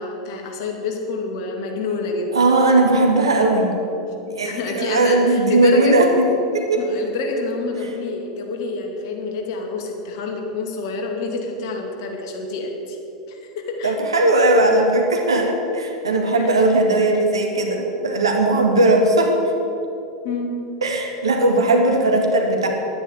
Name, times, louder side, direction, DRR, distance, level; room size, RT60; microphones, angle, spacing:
voice 1, 0.0-2.4 4.4-6.0 6.8-13.0 13.3-14.0 16.4-16.5 20.2-20.6, left 3 dB, 55° left, 2 dB, 2.4 m, -28 dB
voice 2, 2.3-3.7 4.3-6.3 6.5-6.8 13.8-19.4 20.8-22.7, right 2 dB, 80° right, 2 dB, 2.0 m, -18 dB
11.0 x 9.8 x 8.3 m, 3.0 s
figure-of-eight pair, 90°, 3 cm